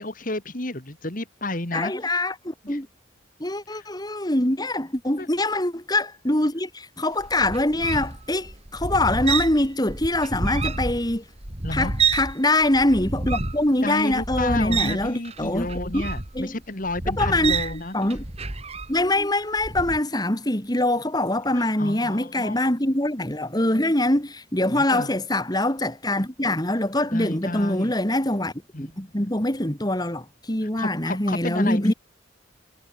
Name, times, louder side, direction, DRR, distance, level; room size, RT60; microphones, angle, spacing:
voice 1, 0.0-1.9 2.6-2.8 3.7-3.9 5.2-5.3 11.6-11.9 13.8-18.0 21.5-22.6 24.7-25.1 27.1-27.9 28.7-29.3 30.6-31.9, left 2 dB, 40° left, 2.6 m, -31 dB
voice 2, 1.7-2.9 3.4-11.2 11.7-15.7 15.9-16.0 16.3-16.5 17.2-17.6 17.9-18.2 18.9-28.5 28.8-31.9, left 1 dB, 20° left, 2.8 m, -24 dB
sound 1, 7.2-12.3 12.6-19.1 19.6-20.0, right 4 dB, 30° right, 2.8 m, -29 dB
head